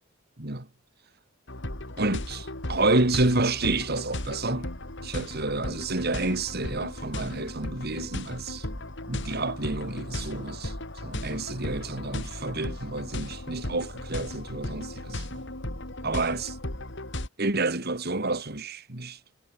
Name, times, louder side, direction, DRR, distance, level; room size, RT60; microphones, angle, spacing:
sound 1, 1.5-17.3, left 1 dB, 60° left, 3.9 m, -36 dB
voice 1, 2.0-4.7 5.0-8.7 9.1-10.7 11.0-15.5 16.0-16.5 17.4-19.2, right 2 dB, 50° right, 2.5 m, -29 dB
head